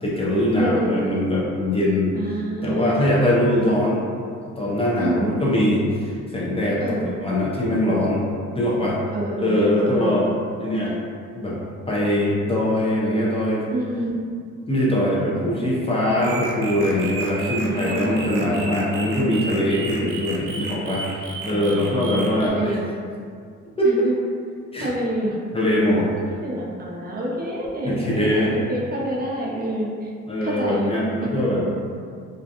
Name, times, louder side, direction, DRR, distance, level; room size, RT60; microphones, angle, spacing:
voice 1, 0.0-2.1 2.6-4.0 4.6-8.3 8.6-9.0 9.4-10.3 10.6-11.0 11.3-11.6 11.9-13.6 14.7-22.8 23.8-24.1 24.7-24.9 25.5-26.1 27.8-28.6 30.3-31.7, left 1 dB, 20° left, -6 dB, 0.5 m, -22 dB
voice 2, 0.6-1.2 2.1-2.9 3.2-3.8 5.0-5.3 6.8-7.1 7.6-8.1 9.1-9.5 9.8-10.3 13.7-14.1 15.3-16.3 17.4-18.7 21.4-22.8 23.8-24.2 24.8-25.4 26.3-30.1 30.4-30.9 31.2-31.3, right 1 dB, 30° right, -4 dB, 0.5 m, -28 dB
sound 1, 16.2-22.5, right 3 dB, 85° right, 0.5 m, -33 dB
2.4 x 2.3 x 2.6 m, 2.2 s
cardioid pair, 90°, 30 cm